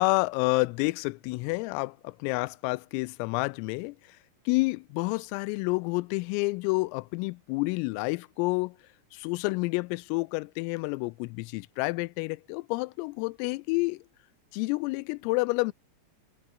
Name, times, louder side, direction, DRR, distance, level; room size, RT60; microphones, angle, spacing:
voice 1, 0.0-4.2 4.5-8.8 9.1-14.0 14.5-15.7, left 25 dB, 90° left, 3.3 m, -29 dB
omnidirectional pair, 5.9 m